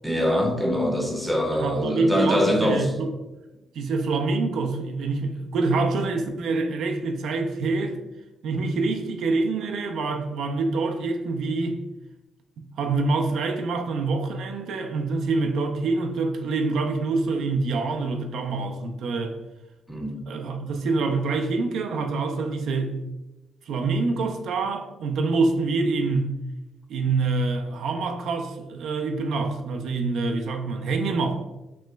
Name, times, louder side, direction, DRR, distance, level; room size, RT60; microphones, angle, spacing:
voice 1, 0.0-2.9 19.9-20.2, equal, 5° right, 0.5 m, -24 dB
voice 2, 1.5-3.1 3.7-8.0 8.4-11.8 12.8-19.4 20.3-23.0 23.7-26.4 26.9-31.5, right 3 dB, 75° right, 0.4 m, -26 dB
3.0 x 2.1 x 3.2 m
cardioid pair, 90°, 0 cm